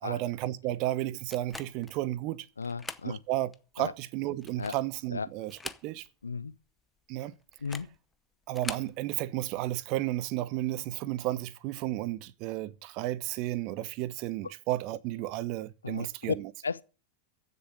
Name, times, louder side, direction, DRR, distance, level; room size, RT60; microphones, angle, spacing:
voice 1, 0.0-2.5 3.0-6.1 7.1-7.3 8.5-16.5, right 15 dB, 40° right, 0.9 m, -33 dB
sound 1, 1.3-2.0 2.6-3.1 3.5-3.6 4.3-5.0 5.4-6.2 6.5-6.6 7.5-8.0 8.5-8.9, left 4 dB, 10° left, 0.8 m, -42 dB
voice 2, 2.6-3.2 3.8-3.9 4.6-4.7 5.1-5.3 6.2-6.6 7.6-7.9 15.8-16.3 16.6-16.8, left 5 dB, 75° left, 0.7 m, -34 dB
15.0 x 6.9 x 8.7 m
figure-of-eight pair, 90°, 0 cm